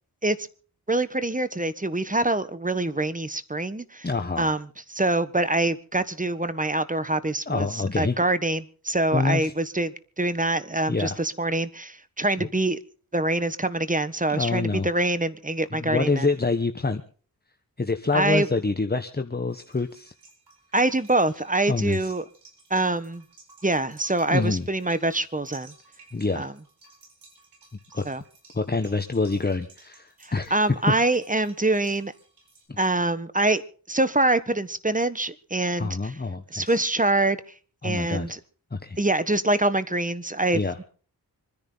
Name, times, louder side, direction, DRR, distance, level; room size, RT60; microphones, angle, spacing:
voice 1, 0.9-4.1 4.4-4.6 4.9-12.8 13.1-16.3 18.1-18.5 20.7-22.2 22.7-23.2 23.6-25.7 26.3-26.5 28.0-28.2 30.2-32.1 32.8-33.6 33.9-36.1 36.5-37.4 37.8-38.4 39.0-40.6, right 2 dB, 20° right, 13 dB, 1.4 m, -25 dB
voice 2, 4.0-4.6 7.5-8.2 9.1-9.5 10.9-11.2 12.4-12.5 14.3-14.9 15.7-17.0 17.8-20.1 21.7-22.1 24.3-24.7 26.1-26.5 27.9-28.0 28.5-30.5 32.7-32.8 35.8-36.8 37.8-38.3 38.7-39.0 40.5-40.8, left 3 dB, 25° left, 8 dB, 1.2 m, -26 dB
sound 1, 19.5-32.7, right 3 dB, 85° right, 4.8 m, -54 dB
26.0 x 10.5 x 4.1 m, 0.41 s
cardioid pair, 45°, 39 cm